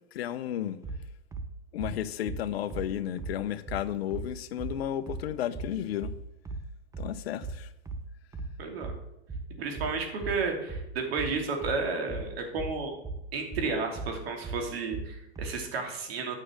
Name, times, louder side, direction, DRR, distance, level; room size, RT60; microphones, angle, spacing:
voice 1, 0.1-0.8 1.7-6.1 7.0-7.7, left 11 dB, 70° left, 0.8 m, -33 dB
sound 1, 0.8-15.6, right 3 dB, 10° right, 0.9 m, -38 dB
voice 2, 8.6-8.9 9.6-12.9 13.3-16.4, right 4 dB, 65° right, 2.9 m, -32 dB
9.5 x 6.5 x 6.6 m
hypercardioid pair, 120°, 32 cm